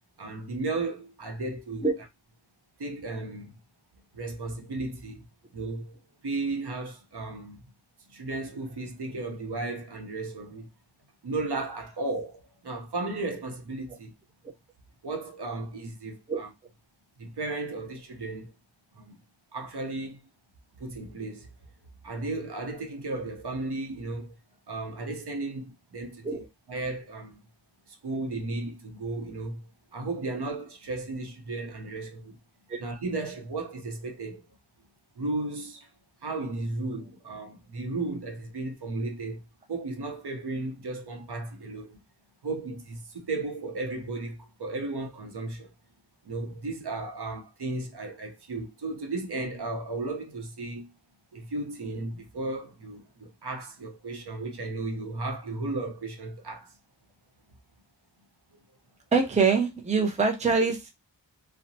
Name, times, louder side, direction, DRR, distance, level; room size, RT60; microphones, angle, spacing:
voice 1, 0.2-1.9 2.8-3.5 4.1-5.2 5.5-7.6 8.1-10.7 11.2-14.1 15.0-16.5 17.2-18.5 18.9-19.2 19.5-20.2 20.8-21.5 22.0-24.3 24.7-27.4 27.9-29.6 29.9-32.4 32.8-34.4 35.2-35.9 36.2-39.4 39.7-42.0 42.4-45.7 46.2-50.9 51.3-56.7 58.5-58.6, right 2 dB, 65° right, 0.8 m, -34 dB
voice 2, 59.1-60.9, right 4 dB, 15° right, 0.5 m, -24 dB
2.8 x 2.1 x 2.7 m
wide cardioid pair, 55°, 44 cm